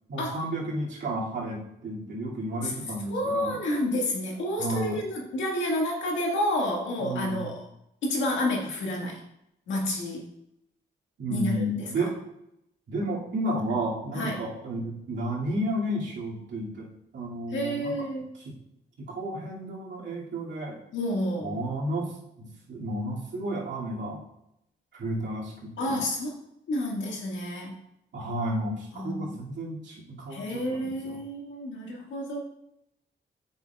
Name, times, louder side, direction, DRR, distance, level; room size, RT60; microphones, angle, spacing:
voice 1, 0.1-3.6 4.6-5.0 7.0-7.5 11.2-12.2 12.9-16.9 17.1-17.9 18.4-18.6 19.0-20.8 21.4-24.2 24.9-26.0 28.1-31.2, right 1 dB, 70° right, -5 dB, 2.4 m, -32 dB
voice 2, 3.1-7.7 8.0-9.2 9.7-10.3 11.3-11.9 14.1-14.4 17.5-18.3 20.9-21.6 25.8-26.4 26.7-27.8 28.9-29.4 30.3-32.4, left 1 dB, 80° left, -1 dB, 1.8 m, -30 dB
8.1 x 6.0 x 2.3 m, 0.82 s
cardioid pair, 70°, 19 cm